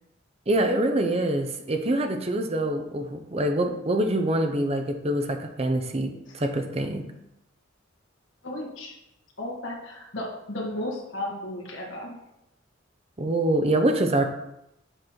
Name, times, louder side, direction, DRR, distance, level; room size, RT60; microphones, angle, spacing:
voice 1, 0.5-7.0 13.2-14.3, right 1 dB, 30° right, 5 dB, 0.7 m, -25 dB
voice 2, 8.4-8.9 9.4-12.2, left 1 dB, 70° left, -2 dB, 1.8 m, -34 dB
7.9 x 4.0 x 4.4 m, 0.84 s
head